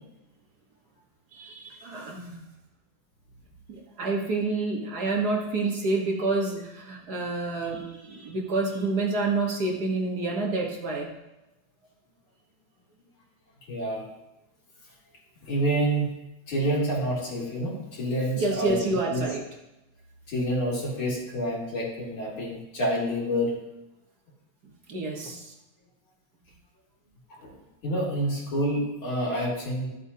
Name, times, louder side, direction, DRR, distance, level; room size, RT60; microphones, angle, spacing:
voice 1, 1.3-2.4 3.7-11.1 18.4-19.4 24.9-25.5, right 3 dB, 55° right, -1 dB, 1.8 m, -28 dB
voice 2, 13.7-14.0 15.5-16.1 16.5-18.8 19.1-19.3 20.3-23.5 27.4-27.5 27.8-29.9, right 1 dB, 80° left, -5 dB, 3.7 m, -28 dB
13.5 x 7.8 x 2.8 m, 0.95 s
omnidirectional pair, 2.2 m